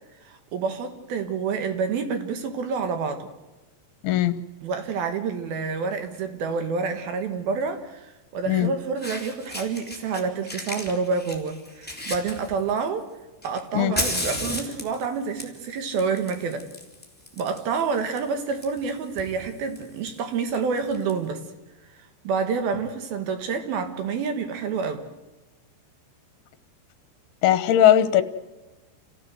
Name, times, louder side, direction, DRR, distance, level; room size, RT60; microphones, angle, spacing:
voice 1, 0.3-3.3 4.6-13.0 13.4-16.7 17.4-21.4 22.2-25.0, right 5 dB, 65° right, 7 dB, 3.1 m, -28 dB
voice 2, 4.0-4.3 8.5-8.7 13.7-14.0 27.4-28.2, left 11 dB, 70° left, 12 dB, 2.9 m, -18 dB
Fire, 5.9-6.2 7.6-7.7 8.6-8.7 9.0-10.2 10.5-12.9 13.4-21.1, left 1 dB, 5° left, 2.2 m, -35 dB
28.5 x 15.0 x 7.9 m, 1.1 s
omnidirectional pair, 5.1 m